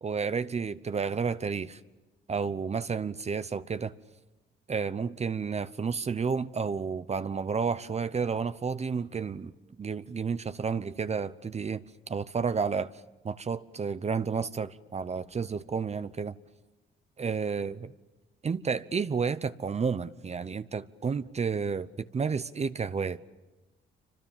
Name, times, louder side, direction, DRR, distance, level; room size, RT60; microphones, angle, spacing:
voice 1, 0.0-1.8 2.3-3.9 4.7-9.5 9.8-11.8 12.1-12.9 13.2-16.3 17.2-17.9 18.4-23.2, right 5 dB, 35° right, 0.9 m, -31 dB
28.0 x 25.5 x 7.3 m
cardioid pair, 90°, 20 cm